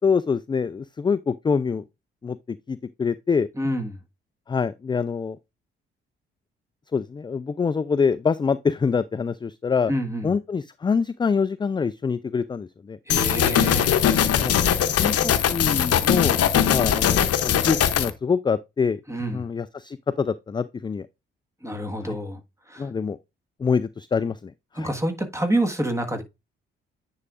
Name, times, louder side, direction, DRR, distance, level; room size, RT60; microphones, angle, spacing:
voice 1, 0.0-1.8 2.2-3.5 4.5-5.4 6.9-9.9 10.2-13.0 14.4-14.6 15.0-16.4 16.7-19.0 19.3-21.1 22.0-22.2 22.8-23.2 23.6-24.9, left 5 dB, 15° left, 0.4 m, -25 dB
voice 2, 3.6-4.0 9.9-10.3 13.1-13.9 19.1-19.5 21.6-22.4 22.7-22.9 24.7-26.2, right 1 dB, 10° right, 1.5 m, -27 dB
sound 1, 13.1-18.1, left 9 dB, 55° left, 0.8 m, -20 dB
9.6 x 4.8 x 2.5 m
hypercardioid pair, 40°, 29 cm